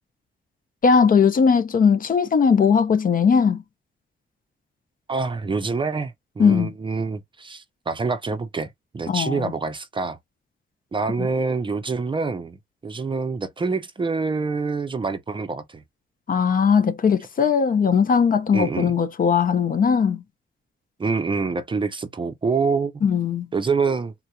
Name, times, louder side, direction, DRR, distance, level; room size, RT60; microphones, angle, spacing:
voice 1, 0.8-3.6 6.4-6.7 9.1-9.5 11.2-11.3 16.3-20.2 23.0-23.5, left 6 dB, 45° left, 0.6 m, -19 dB
voice 2, 5.1-10.2 10.9-12.6 12.8-15.8 18.5-18.9 21.0-23.0 23.5-24.1, right 4 dB, 25° right, 0.5 m, -26 dB
3.7 x 2.8 x 2.2 m
wide cardioid pair, 180°, 20 cm